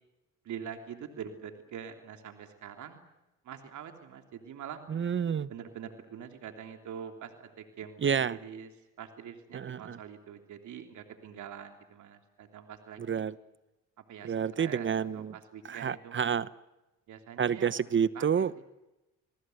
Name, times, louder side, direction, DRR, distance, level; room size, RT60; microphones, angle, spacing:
voice 1, 0.4-3.0 3.4-4.8 5.5-8.7 9.0-13.2 14.1-16.3 17.1-17.7 18.1-18.4, right 8 dB, 75° right, 6 dB, 3.2 m, -44 dB
voice 2, 4.9-5.5 8.0-8.4 9.5-10.0 13.0-13.3 14.2-15.3 15.6-16.5 17.4-18.5, right 7 dB, 40° right, 17 dB, 0.9 m, -29 dB
29.5 x 20.0 x 7.9 m, 0.99 s
cardioid pair, 90°, 30 cm